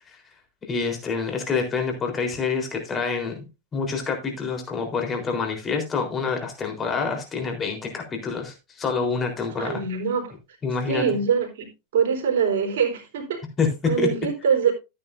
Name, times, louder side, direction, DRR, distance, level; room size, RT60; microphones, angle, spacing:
voice 1, 0.7-3.5 3.7-9.8 10.6-11.2 13.6-14.1, left 5 dB, 20° left, 3.8 m, -27 dB
voice 2, 9.6-10.3 10.9-11.7 11.9-13.4 13.8-14.7, right 6 dB, 55° right, 3.9 m, -23 dB
13.5 x 9.1 x 2.6 m
figure-of-eight pair, 90°, 0 cm